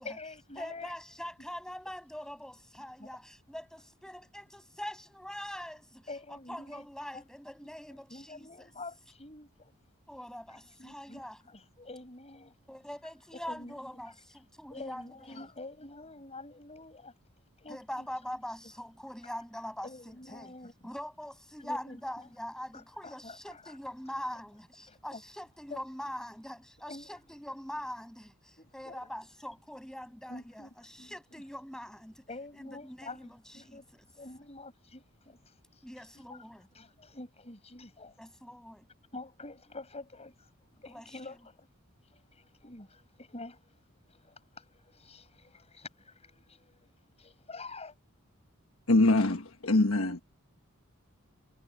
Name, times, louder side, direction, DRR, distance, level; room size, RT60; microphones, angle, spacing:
voice 1, 0.0-0.9 3.0-3.1 6.1-6.8 7.1-7.2 8.1-9.8 10.5-12.5 13.3-13.8 14.7-17.1 17.6-18.1 19.8-20.7 21.6-22.3 22.7-23.7 24.9-25.2 25.7-25.8 26.9-27.1 28.6-29.0 30.3-30.7 31.0-31.4 32.3-35.8 36.1-36.4 36.7-38.2 39.1-41.7 42.1-43.8 44.1-46.9 47.2-47.9, left 2 dB, 30° left, 7.8 m, -47 dB
voice 2, 0.6-8.7 10.1-11.4 12.7-15.5 17.7-20.5 20.8-32.3 32.5-34.1 35.8-36.7 38.2-38.9 40.9-41.4, equal, 5° left, 6.9 m, -43 dB
voice 3, 48.9-50.2, left 2 dB, 70° left, 1.4 m, -24 dB
head